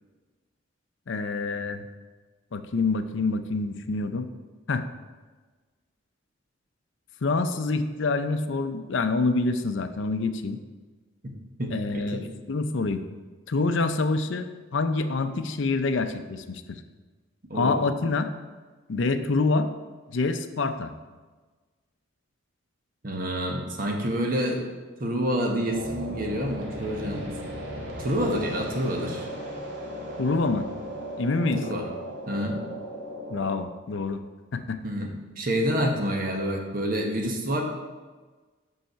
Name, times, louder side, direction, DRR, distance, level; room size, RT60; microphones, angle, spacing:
voice 1, 1.1-1.9 2.5-4.3 4.7-4.9 7.2-10.6 11.7-12.2 12.5-13.0 13.5-14.5 14.7-16.8 17.5-18.3 18.9-19.7 20.1-20.9 30.2-30.7 31.2-31.6 33.3-34.2 34.5-34.8, left 3 dB, 65° left, 9 dB, 0.5 m, -26 dB
voice 2, 11.6-12.2 17.5-17.8 23.0-24.6 25.0-27.3 28.0-29.3 31.5-31.8 32.3-32.6 34.8-37.6, equal, 45° right, 1 dB, 1.1 m, -28 dB
sound 1, 25.7-33.5, equal, 60° right, 1.6 m, -36 dB
5.6 x 5.4 x 5.6 m, 1.3 s
head